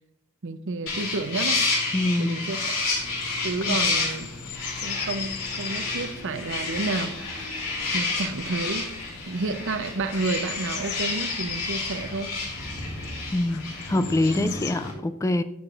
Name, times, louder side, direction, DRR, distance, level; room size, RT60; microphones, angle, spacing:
voice 1, 0.4-1.6 2.2-2.8 3.4-4.3 4.8-7.2 7.9-8.9 9.3-12.3 14.3-14.5, right 3 dB, 60° right, 0.7 m, -30 dB
sound 1, 0.9-14.9, left 3 dB, 65° left, 3.4 m, -30 dB
voice 2, 1.9-2.4 3.7-3.8 13.3-15.4, left 2 dB, 15° left, 0.3 m, -25 dB
sound 2, 2.8-14.7, left 8 dB, 85° left, 0.7 m, -40 dB
14.0 x 6.6 x 2.5 m
head